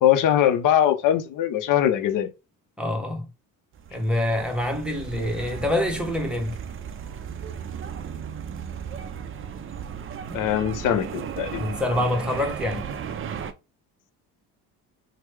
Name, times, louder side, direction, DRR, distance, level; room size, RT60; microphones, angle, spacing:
voice 1, 0.0-2.3 10.3-11.6, left 11 dB, 45° left, 0.6 m, -21 dB
voice 2, 2.8-3.3 3.9-6.6 10.3-10.5 11.5-12.9, left 1 dB, ahead, 1.0 m, -26 dB
sound 1, 3.7-13.5, right 7 dB, 30° right, 0.4 m, -35 dB
3.0 x 2.1 x 3.2 m
hypercardioid pair, 65°, 45 cm